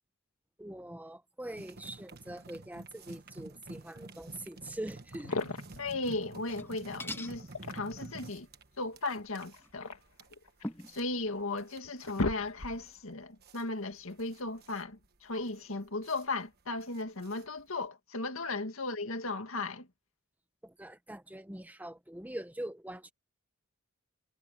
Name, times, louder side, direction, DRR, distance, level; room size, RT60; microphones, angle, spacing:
voice 1, 0.6-5.4 20.6-23.1, right 1 dB, 5° right, 1.0 m, -43 dB
sound 1, 1.6-17.9, right 2 dB, 45° right, 1.4 m, -51 dB
sound 2, 5.1-5.9 7.3-8.1 9.4-10.8 11.4-11.5 11.8-13.0, left 2 dB, 85° left, 1.8 m, -36 dB
voice 2, 5.8-7.5 7.7-8.5 8.8-9.9 10.9-19.9, left 2 dB, 65° left, 2.1 m, -36 dB
sound 3, 6.4-6.7 7.0-7.4 9.6-9.7 10.6-11.0, left 1 dB, 10° left, 1.6 m, -40 dB
head